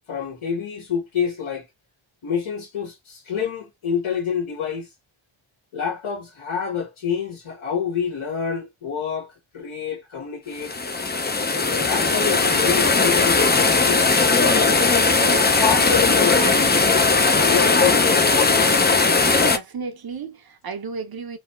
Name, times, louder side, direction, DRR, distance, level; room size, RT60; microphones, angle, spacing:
voice 1, 0.1-1.7 2.2-4.9 5.7-10.7 11.5-14.0 14.6-15.1 15.6-16.9 17.5-18.7, left 7 dB, 75° left, 1.9 m, -27 dB
sound 1, 10.6-19.6, left 3 dB, 20° left, 0.6 m, -18 dB
voice 2, 15.2-15.6 19.4-21.4, right 5 dB, 45° right, 0.9 m, -33 dB
4.2 x 2.9 x 3.4 m
wide cardioid pair, 150°, 50 cm